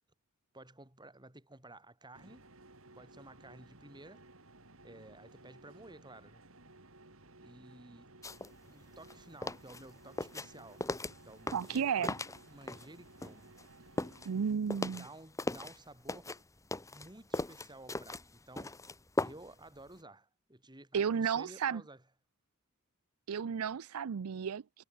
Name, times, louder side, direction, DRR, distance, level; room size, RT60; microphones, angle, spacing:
voice 1, 0.5-2.4 2.9-4.2 4.8-6.4 7.4-8.1 8.6-10.9 11.2-12.1 12.5-13.5 14.8-16.3 16.9-18.8 19.2-22.0, right 2 dB, 20° right, 5.5 m, -54 dB
sound 1, 2.1-14.5, right 2 dB, 65° right, 4.7 m, -58 dB
sound 2, 8.2-8.5 8.9-12.9 13.2-15.8 16.1-19.6 19.9-20.0, left 2 dB, 15° left, 1.1 m, -38 dB
voice 2, 11.5-12.1 14.3-15.0 20.9-21.8 23.3-24.8, right 7 dB, 85° right, 0.5 m, -33 dB
head